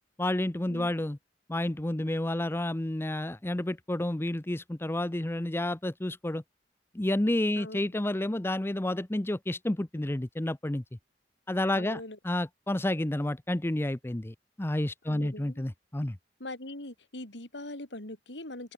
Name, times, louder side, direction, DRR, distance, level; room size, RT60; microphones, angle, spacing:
voice 1, 0.2-1.2 1.5-6.4 6.9-10.8 11.5-16.2, left 1 dB, 15° left, 0.6 m, -30 dB
voice 2, 11.7-12.2 15.1-15.6 16.4-18.7, left 1 dB, 80° left, 4.6 m, -41 dB
open air
head